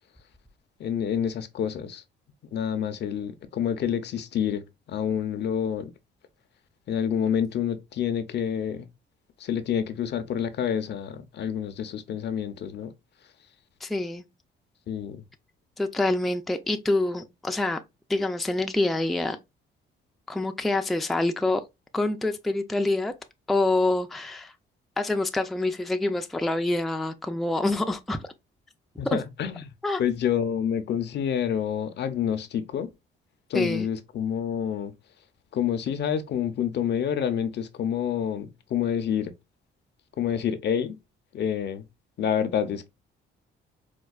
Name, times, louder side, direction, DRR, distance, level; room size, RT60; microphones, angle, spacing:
voice 1, 0.8-2.0 2.5-5.9 6.9-8.9 9.4-12.9 14.9-15.2 29.0-29.7 30.0-32.9 33.5-34.9 35.5-39.3 40.2-41.0 41.3-41.8 42.2-42.9, left 8 dB, 60° left, 0.6 m, -28 dB
voice 2, 13.8-14.2 15.8-17.8 18.1-19.4 20.3-21.6 21.9-23.1 23.5-24.5 25.0-28.3 29.1-29.2 29.8-30.0 33.5-33.9, left 2 dB, ahead, 0.4 m, -26 dB
4.4 x 2.3 x 2.3 m
cardioid pair, 90°, 20 cm